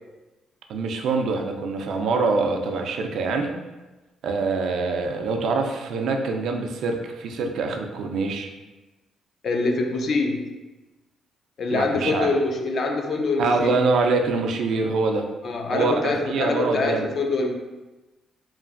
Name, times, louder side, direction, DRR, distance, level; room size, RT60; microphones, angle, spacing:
voice 1, 0.7-3.5 4.2-8.5 11.7-12.3 13.4-15.3 15.7-17.1, right 3 dB, 70° right, 4 dB, 0.3 m, -24 dB
voice 2, 9.4-10.5 11.6-13.8 15.4-17.5, left 3 dB, 55° left, 3 dB, 0.4 m, -24 dB
2.9 x 2.4 x 2.4 m, 1.1 s
cardioid pair, 90°, 0 cm